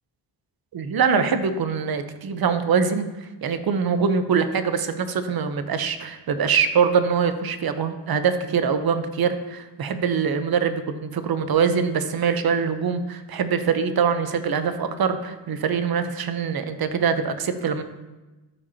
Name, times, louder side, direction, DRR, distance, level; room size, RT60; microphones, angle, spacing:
voice 1, 0.7-17.8, right 6 dB, 55° right, 10 dB, 0.8 m, -23 dB
13.0 x 5.1 x 2.8 m, 1.1 s
cardioid pair, 80°, 44 cm